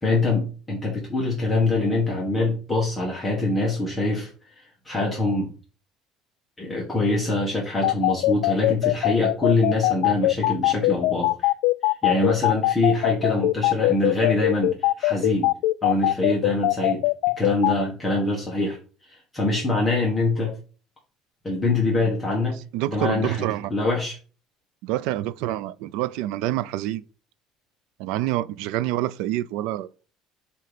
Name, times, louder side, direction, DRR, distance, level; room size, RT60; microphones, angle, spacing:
voice 1, 0.0-4.3 4.5-5.5 6.6-11.5 11.8-15.5 15.8-17.0 17.4-18.8 19.0-20.5 21.4-22.6 22.9-24.2, left 2 dB, 10° left, 1.3 m, -24 dB
sound 1, 7.8-17.7, left 19 dB, 80° left, 0.3 m, -21 dB
voice 2, 22.7-23.7 24.8-27.0 28.0-29.9, right 14 dB, 75° right, 0.4 m, -27 dB
7.6 x 2.8 x 5.0 m
cardioid pair, 170°, 0 cm